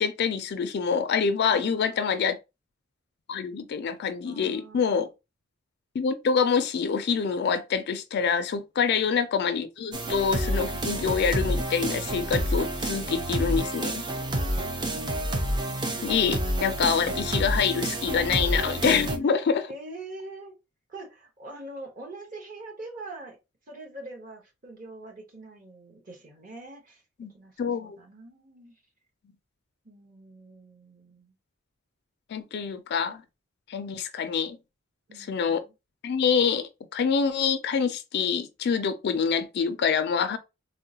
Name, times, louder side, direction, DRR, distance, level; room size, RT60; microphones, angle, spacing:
voice 1, 0.0-2.4 3.3-5.1 5.9-14.0 16.0-19.7 27.2-27.3 27.6-28.0 32.3-33.2 33.7-34.6 35.2-35.6 36.0-40.4, left 6 dB, 55° left, 0.4 m, -26 dB
voice 2, 1.5-2.3 4.2-5.1 18.8-19.1 19.7-20.5 20.9-23.4 23.7-27.0 27.3-28.7 29.8-31.3 35.1-35.7, right 2 dB, 40° right, 1.1 m, -44 dB
sound 1, 9.9-19.2, right 1 dB, 25° right, 0.5 m, -29 dB
3.6 x 2.1 x 2.7 m
head